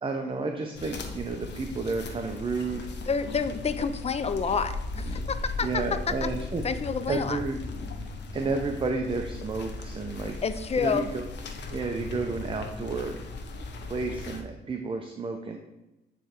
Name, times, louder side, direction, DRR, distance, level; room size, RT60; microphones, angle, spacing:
voice 1, 0.0-3.1 5.0-5.3 5.6-6.6 7.1-7.6 8.3-10.3 10.8-11.2 11.7-13.2 13.8-15.6, right 3 dB, 25° right, 5 dB, 0.6 m, -31 dB
sound 1, 0.7-14.4, left 3 dB, 65° left, 1.1 m, -37 dB
voice 2, 3.1-6.3 6.6-7.4 10.4-11.1, left 5 dB, 30° left, 11 dB, 0.5 m, -29 dB
8.7 x 3.3 x 4.4 m, 1.0 s
cardioid pair, 90°, 20 cm